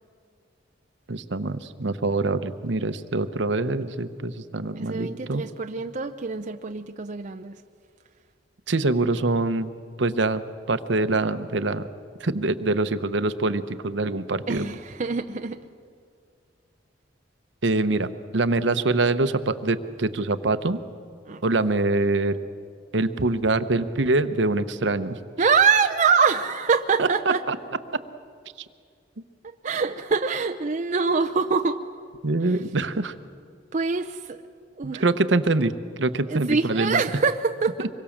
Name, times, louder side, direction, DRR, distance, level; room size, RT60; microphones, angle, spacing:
voice 1, 1.1-5.4 8.7-9.7 10.0-10.4 10.7-11.8 12.2-14.6 17.6-18.1 18.3-20.8 21.4-22.4 22.9-25.2 27.0-27.1 27.5-27.6 32.2-33.1 34.8-35.7 36.0-37.0, right 2 dB, 65° right, 11 dB, 0.9 m, -24 dB
voice 2, 4.7-7.6 14.5-15.6 21.3-21.4 25.4-27.4 29.6-31.8 33.7-34.4 34.8-35.1 36.3-37.9, right 5 dB, 40° right, 6 dB, 0.6 m, -24 dB
25.0 x 22.5 x 7.3 m, 2.3 s
head